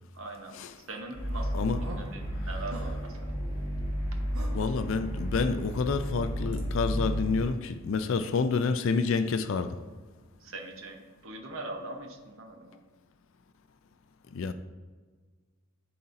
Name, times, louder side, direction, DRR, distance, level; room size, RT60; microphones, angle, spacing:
voice 1, 0.1-3.6 10.4-12.8, right 2 dB, 60° right, 0.9 m, -42 dB
sound 1, 1.1-7.5, equal, 25° left, 1.5 m, -32 dB
sound 2, 1.3-7.6, right 1 dB, 80° right, 1.3 m, -49 dB
voice 2, 4.5-9.8 14.3-14.5, left 4 dB, 60° left, 0.4 m, -28 dB
11.0 x 4.1 x 2.6 m
head